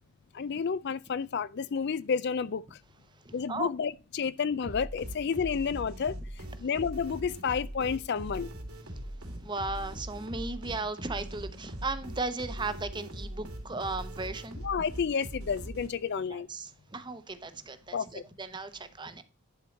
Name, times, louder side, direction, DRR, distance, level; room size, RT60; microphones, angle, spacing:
voice 1, 0.3-2.6 3.3-6.2 6.6-8.5 14.6-16.5 17.9-18.2, left 6 dB, 50° left, 0.4 m, -30 dB
voice 2, 3.2-3.7 6.6-6.7 8.8-14.6 16.3-19.2, right 3 dB, 20° right, 0.8 m, -37 dB
sound 1, 4.6-16.2, equal, 85° right, 2.9 m, -41 dB
11.0 x 4.6 x 5.2 m
head